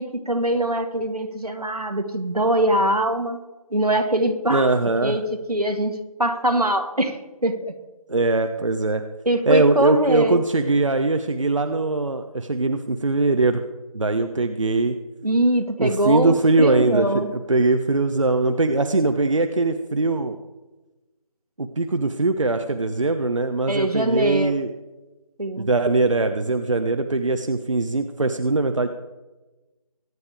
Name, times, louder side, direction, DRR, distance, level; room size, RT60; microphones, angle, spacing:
voice 1, 0.0-3.4 3.7-4.7 5.0-5.2 5.5-7.7 9.3-10.4 15.2-17.3 23.7-24.6 25.4-25.7, right 1 dB, 85° right, 6 dB, 2.0 m, -23 dB
voice 2, 4.5-5.2 8.1-9.0 9.5-13.6 13.9-15.0 15.8-20.4 21.6-24.7 25.6-28.9, right 2 dB, 55° right, 7 dB, 0.9 m, -21 dB
23.5 x 9.6 x 3.5 m, 1.1 s
figure-of-eight pair, 165°, 19 cm